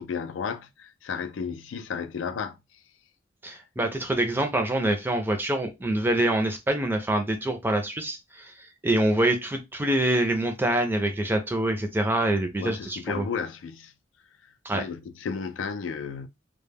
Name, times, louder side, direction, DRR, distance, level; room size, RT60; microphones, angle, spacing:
voice 1, 0.0-2.6 12.6-13.9 14.7-16.3, left 6 dB, 75° left, 0.3 m, -33 dB
voice 2, 3.4-13.3 14.6-14.8, right 1 dB, 10° right, 0.4 m, -25 dB
2.1 x 2.1 x 3.3 m
head